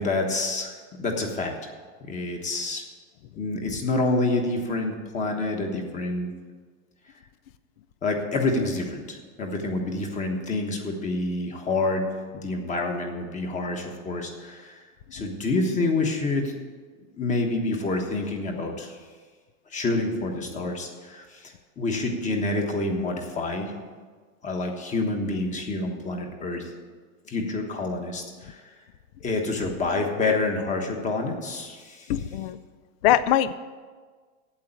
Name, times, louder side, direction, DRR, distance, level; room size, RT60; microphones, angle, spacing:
voice 1, 0.0-1.5 2.1-2.8 3.3-6.3 8.0-12.0 12.3-14.8 15.1-16.5 17.2-19.0 19.7-23.7 24.4-26.7 27.3-28.6 29.2-32.1, left 2 dB, 15° left, 3 dB, 1.2 m, -28 dB
voice 2, 32.1-32.6 33.0-33.6, left 11 dB, 45° left, 14 dB, 0.5 m, -22 dB
8.6 x 8.0 x 8.8 m, 1.5 s
supercardioid pair, 155°, 43 cm